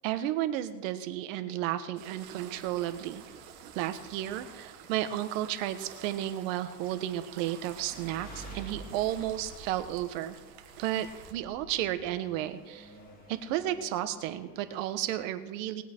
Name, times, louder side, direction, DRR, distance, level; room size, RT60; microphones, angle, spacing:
voice 1, 0.0-3.2 3.7-10.4 10.8-12.9 13.3-15.8, right 12 dB, 90° right, 10 dB, 1.2 m, -33 dB
sound 1, 1.9-11.3, right 9 dB, 65° right, 1.5 m, -50 dB
sound 2, 2.6-15.1, right 2 dB, 20° left, 2.7 m, -51 dB
19.5 x 8.6 x 4.5 m, 1.3 s
cardioid pair, 160°, 38 cm